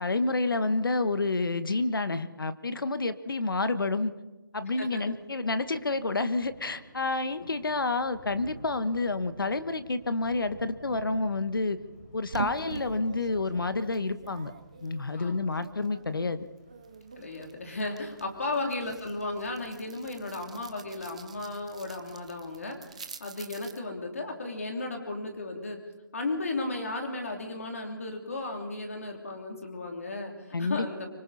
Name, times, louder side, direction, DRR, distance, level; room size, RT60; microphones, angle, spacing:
voice 1, 0.0-4.1 4.5-11.8 12.1-14.5 14.8-16.5 30.5-30.8, left 3 dB, 85° left, 11 dB, 1.4 m, -29 dB
Thunder / Rain, 4.5-22.9, right 1 dB, 20° left, 5.3 m, -54 dB
sound 1, 12.3-16.2 16.6-23.8, right 5 dB, 20° right, 0.6 m, -45 dB
voice 2, 17.2-22.8 23.2-25.8 26.1-31.1, left 2 dB, 40° left, 3 dB, 3.1 m, -35 dB
25.5 x 25.0 x 4.2 m, 1.1 s
hypercardioid pair, 180°, 11 cm